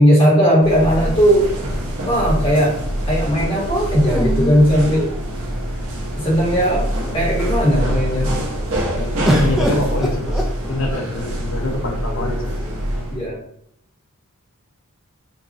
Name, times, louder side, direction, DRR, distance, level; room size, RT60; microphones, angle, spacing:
voice 1, 0.0-1.5 2.0-2.8 3.0-5.1 6.2-8.3 13.1-13.4, equal, 25° left, -5 dB, 1.7 m, -17 dB
sound 1, 0.6-13.2, equal, 80° right, 1.3 m, -24 dB
sound 2, 0.9-2.0 4.0-5.6 6.3-6.4 6.7-7.3 9.3-11.1 12.1-12.8, equal, ahead, 0.5 m, -26 dB
voice 2, 8.9-12.5, left 1 dB, 65° left, 1 dB, 0.9 m, -25 dB
5.9 x 2.7 x 3.0 m, 0.69 s
head